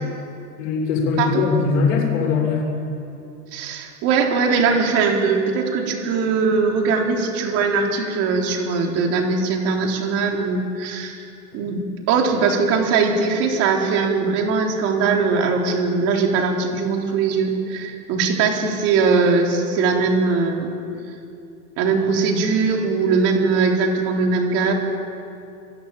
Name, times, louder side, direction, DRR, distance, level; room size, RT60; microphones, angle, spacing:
voice 1, 0.6-2.7, left 5 dB, 50° left, -1 dB, 7.9 m, -20 dB
voice 2, 3.5-11.2 11.5-20.7 21.8-24.7, right 4 dB, 30° right, 2 dB, 3.9 m, -20 dB
25.5 x 23.0 x 9.1 m, 2.7 s
supercardioid pair, 165°, 48 cm